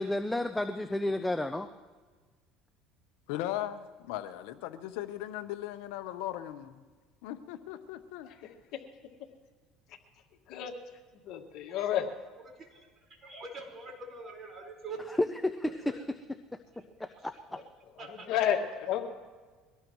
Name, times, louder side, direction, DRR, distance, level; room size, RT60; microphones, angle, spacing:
voice 1, 0.0-1.7 15.2-16.0 16.8-17.3, left 1 dB, 5° left, 0.6 m, -31 dB
voice 2, 3.3-6.8 7.2-8.3, left 13 dB, 80° left, 0.9 m, -38 dB
voice 3, 11.3-12.1 18.3-19.0, left 10 dB, 65° left, 1.8 m, -30 dB
voice 4, 12.5-12.9 13.2-15.2 15.8-16.0 17.1-17.2 18.0-18.3, right 3 dB, 35° right, 4.7 m, -44 dB
23.5 x 18.0 x 3.1 m
supercardioid pair, 115°, 0 cm